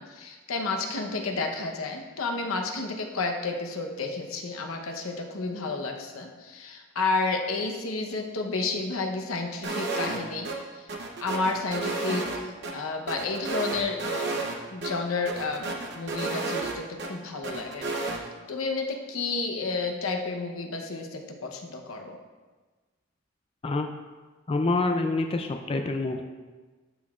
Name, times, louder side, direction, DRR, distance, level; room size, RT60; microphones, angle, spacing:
voice 1, 0.0-10.9 11.2-12.4 12.7-17.9 18.2-22.2, left 3 dB, 90° left, 3 dB, 0.9 m, -31 dB
sound 1, 9.6-10.2 10.4-10.6 10.9-12.7 13.1-14.6 14.8-14.9 15.3-17.1 17.4-18.2, right 3 dB, 55° right, 0.8 m, -31 dB
voice 2, 24.5-26.2, left 2 dB, 25° left, 4 dB, 0.3 m, -26 dB
12.0 x 5.8 x 2.4 m, 1.3 s
head